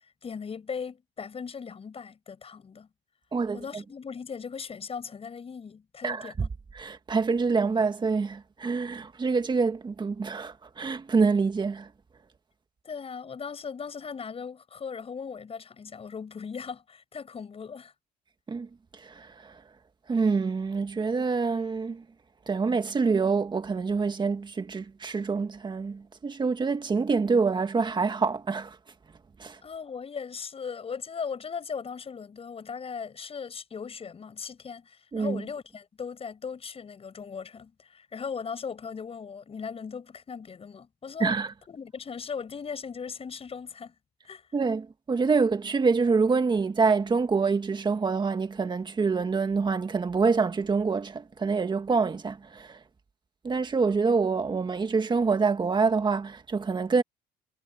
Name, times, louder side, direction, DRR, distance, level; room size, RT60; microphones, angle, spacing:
voice 1, 0.2-2.9 3.5-6.5 12.8-17.9 29.6-41.4 41.7-43.9 44.2-44.5, left 6 dB, 35° left, 7.4 m, -38 dB
voice 2, 6.7-11.9 18.5-18.7 19.0-19.5 20.1-22.0 22.5-28.8 29.4-29.6 35.1-35.4 41.2-41.5 44.5-52.8 53.4-57.0, right 4 dB, 25° right, 1.9 m, -26 dB
cardioid pair, 110°, 17 cm